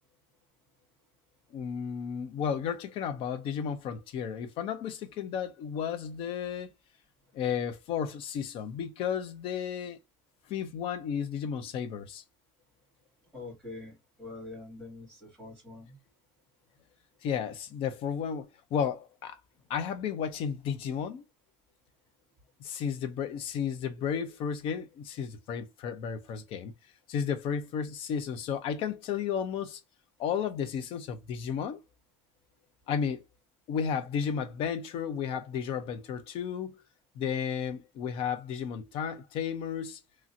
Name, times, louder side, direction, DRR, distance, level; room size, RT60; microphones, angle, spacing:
voice 1, 1.5-6.7 7.3-10.0 10.5-12.2 17.2-19.4 19.7-21.2 22.6-26.7 27.1-29.8 30.2-31.8 32.9-33.2 33.7-36.8 37.2-40.0, left 7 dB, 55° left, 0.6 m, -33 dB
voice 2, 13.3-16.0, left 3 dB, 5° left, 2.1 m, -45 dB
3.0 x 2.8 x 2.5 m
cardioid pair, 165°, 12 cm